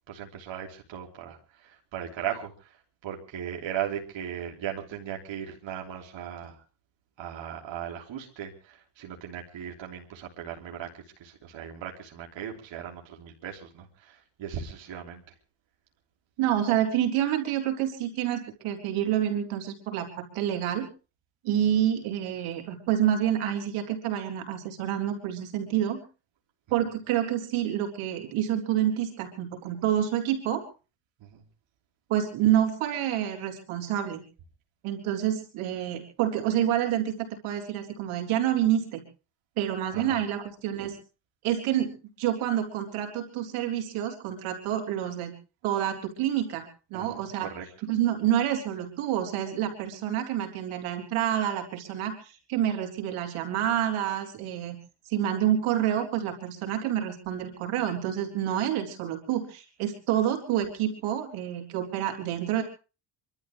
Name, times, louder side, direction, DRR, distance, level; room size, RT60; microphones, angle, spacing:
voice 1, 0.1-2.8 3.0-6.6 7.2-15.3 31.2-31.4 39.9-40.2 46.9-47.7, right 9 dB, 65° right, 1 dB, 3.4 m, -38 dB
voice 2, 16.4-20.9 21.4-26.0 26.7-30.6 32.1-34.2 34.8-39.0 39.6-41.0 41.4-41.9 42.2-45.3 45.6-47.5 47.8-54.8 55.1-62.6, right 11 dB, 85° right, 4 dB, 3.9 m, -28 dB
27.5 x 13.0 x 3.5 m, 0.35 s
cardioid pair, 95°, 49 cm